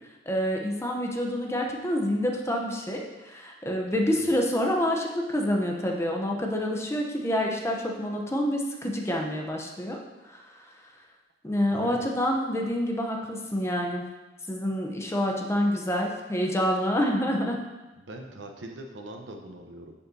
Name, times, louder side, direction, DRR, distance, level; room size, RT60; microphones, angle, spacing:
voice 1, 0.3-10.0 10.2-10.4 11.4-14.1 14.5-17.6, equal, 15° left, 1 dB, 0.8 m, -27 dB
voice 2, 3.9-4.3 11.7-12.1 18.0-19.9, right 1 dB, 80° right, 3 dB, 0.9 m, -42 dB
9.9 x 5.5 x 2.8 m, 1.1 s
head